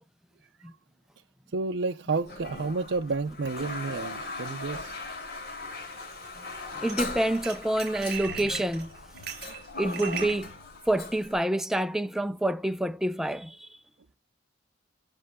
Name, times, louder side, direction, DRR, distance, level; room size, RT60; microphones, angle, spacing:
voice 1, 1.5-5.0, right 3 dB, 75° right, 0.6 m, -30 dB
Toilet flush, 2.2-11.3, left 3 dB, 55° left, 3.8 m, -39 dB
voice 2, 6.8-8.9 9.8-10.6 10.9-13.8, right 1 dB, ahead, 0.5 m, -27 dB
sound 1, 6.8-6.9 7.2-10.4, right 9 dB, 55° right, 4.0 m, -38 dB
7.9 x 6.7 x 3.6 m
head